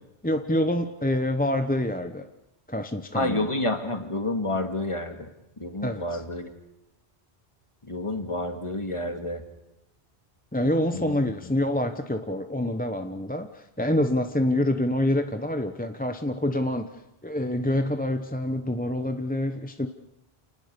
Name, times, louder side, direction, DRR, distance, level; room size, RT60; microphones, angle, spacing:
voice 1, 0.2-2.3 2.7-3.5 5.8-6.2 10.5-19.9, left 1 dB, 10° left, 7 dB, 0.8 m, -26 dB
voice 2, 3.1-5.3 5.6-6.5 7.9-9.4 10.9-11.2, left 2 dB, 25° left, 5 dB, 2.2 m, -29 dB
29.0 x 19.5 x 6.9 m, 0.95 s
omnidirectional pair, 1.1 m